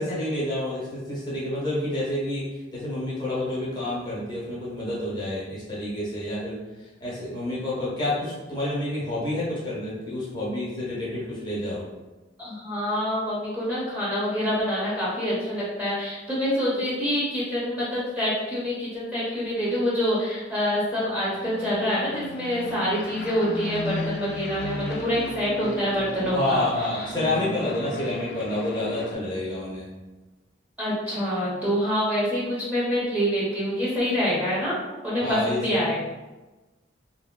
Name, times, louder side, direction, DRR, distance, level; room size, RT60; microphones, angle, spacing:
voice 1, 0.0-2.4 2.7-6.6 7.0-11.9 26.3-29.9 35.2-35.6, left 1 dB, 25° left, -8 dB, 0.9 m, -29 dB
voice 2, 12.4-27.1 30.8-34.7 35.0-36.0, equal, 10° right, -9 dB, 0.8 m, -26 dB
sound 1, 20.9-29.1, left 3 dB, 55° left, 0.3 m, -36 dB
3.3 x 2.5 x 2.2 m, 1.1 s
head